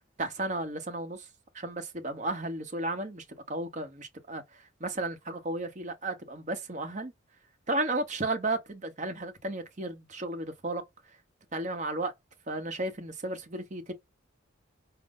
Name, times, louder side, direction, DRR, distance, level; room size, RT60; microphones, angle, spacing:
voice 1, 0.2-1.3 1.5-7.1 7.7-10.8 11.5-12.1 12.5-13.9, right 2 dB, 35° right, 0.9 m, -34 dB
5.2 x 2.1 x 3.6 m
head